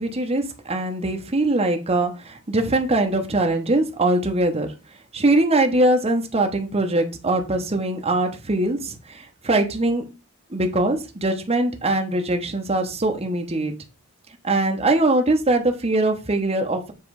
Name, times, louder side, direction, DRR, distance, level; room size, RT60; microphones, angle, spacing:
voice 1, 0.0-4.7 5.1-10.0 10.5-13.7 14.4-16.9, right 2 dB, 30° right, 4 dB, 1.0 m, -22 dB
7.6 x 3.2 x 4.7 m, 0.29 s
head